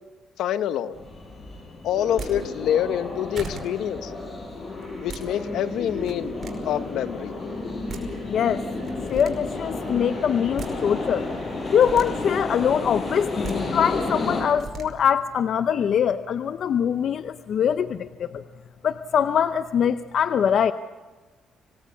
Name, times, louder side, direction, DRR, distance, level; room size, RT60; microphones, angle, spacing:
voice 1, 0.4-0.9 1.8-4.1 5.0-6.3 6.6-7.3, left 10 dB, 80° left, 11 dB, 1.2 m, -26 dB
sound 1, 0.9-14.4, left 3 dB, 40° left, 6.4 m, -32 dB
sound 2, 2.0-2.3 3.0-3.1 3.3-3.6 4.8-5.2 5.9-6.5 7.6-7.7 7.9-8.0 8.8-9.3 10.3-10.7 11.6-12.1 13.2-13.5 14.4-14.8, right 5 dB, 45° right, 5.3 m, -37 dB
voice 2, 8.2-8.6 9.1-11.3 11.7-18.4 18.8-20.7, left 8 dB, 65° left, 11 dB, 0.7 m, -23 dB
26.0 x 18.5 x 8.4 m, 1.3 s
cardioid pair, 90°, 0 cm